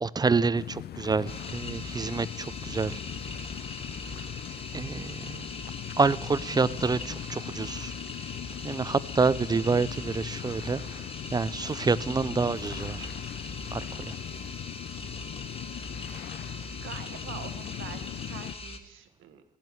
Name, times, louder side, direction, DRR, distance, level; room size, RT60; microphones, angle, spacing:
voice 1, 0.0-3.0 4.7-5.5 6.0-7.9 8.6-10.8 11.3-13.1 13.7-14.1, right 4 dB, 20° right, 18 dB, 0.4 m, -27 dB
sound 1, 0.5-18.5, left 11 dB, 55° left, 0.4 m, -40 dB
sound 2, 1.3-18.8, left 2 dB, 30° left, 1.6 m, -41 dB
voice 2, 15.9-16.4 16.8-19.4, right 9 dB, 80° right, 9 dB, 1.2 m, -45 dB
13.0 x 7.7 x 9.6 m, 1.1 s
cardioid pair, 90°, 20 cm